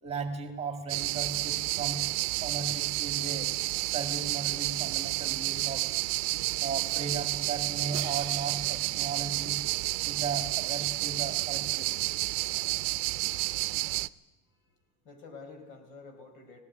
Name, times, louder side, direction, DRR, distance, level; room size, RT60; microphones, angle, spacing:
voice 1, 0.0-2.1 2.4-3.5 3.8-5.9 6.6-9.6 10.0-11.9, right 5 dB, 20° right, 5 dB, 2.0 m, -36 dB
sound 1, 0.9-14.1, right 23 dB, 90° right, 0.6 m, -30 dB
Crash cymbal, 7.9-10.1, right 15 dB, 55° right, 0.9 m, -46 dB
voice 2, 14.5-14.8 15.0-16.6, left 4 dB, 85° left, 5 dB, 4.7 m, -49 dB
18.5 x 17.0 x 9.6 m, 1.2 s
cardioid pair, 165°, 34 cm